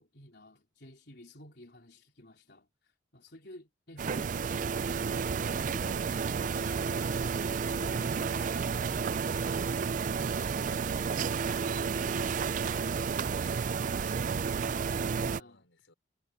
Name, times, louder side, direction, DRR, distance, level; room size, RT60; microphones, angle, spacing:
voice 1, 0.0-7.2 7.6-11.1 11.4-13.1 14.6-15.6, left 1 dB, 55° left, 4.2 m, -53 dB
sound 1, 4.0-15.4, right 5 dB, 40° right, 0.3 m, -31 dB
voice 2, 14.0-15.9, left 2 dB, 85° left, 5.7 m, -63 dB
head